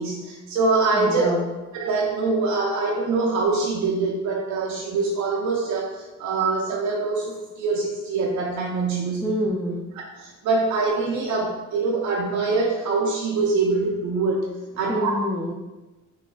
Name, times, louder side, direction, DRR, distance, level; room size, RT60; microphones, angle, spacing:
voice 1, 0.0-1.3 1.7-9.3 10.2-14.5 14.8-15.1, right 3 dB, 70° right, -1 dB, 0.5 m, -24 dB
voice 2, 0.9-1.5 9.2-9.8 14.8-15.5, equal, 10° left, -4 dB, 0.4 m, -27 dB
5.6 x 2.4 x 2.3 m, 1.1 s
cardioid pair, 90°, 30 cm